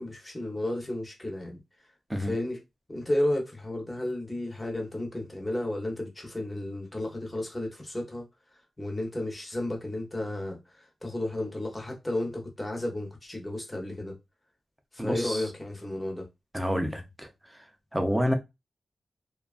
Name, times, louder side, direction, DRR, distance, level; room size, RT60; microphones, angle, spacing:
voice 1, 0.0-1.6 2.2-2.6 2.9-8.3 8.8-14.1 14.9-16.3, left 1 dB, 20° left, 0.8 m, -33 dB
voice 2, 15.0-15.4 16.5-17.3 17.9-18.3, equal, 5° right, 0.5 m, -28 dB
2.7 x 2.3 x 2.4 m
wide cardioid pair, 110°, 0 cm